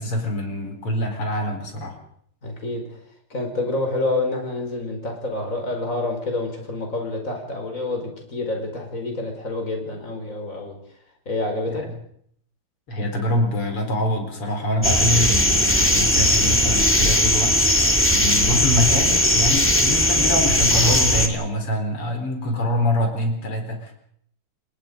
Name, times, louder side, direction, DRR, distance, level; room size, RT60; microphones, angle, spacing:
voice 1, 0.0-2.0 11.7-11.9 12.9-23.9, left 1 dB, 90° left, 4 dB, 5.2 m, -25 dB
voice 2, 2.4-3.0 3.3-10.8 11.3-11.8, left 2 dB, 35° left, 3 dB, 5.4 m, -28 dB
sound 1, 14.8-21.3, left 1 dB, 5° left, 2.0 m, -18 dB
29.0 x 19.0 x 5.3 m, 0.68 s
omnidirectional pair, 2.4 m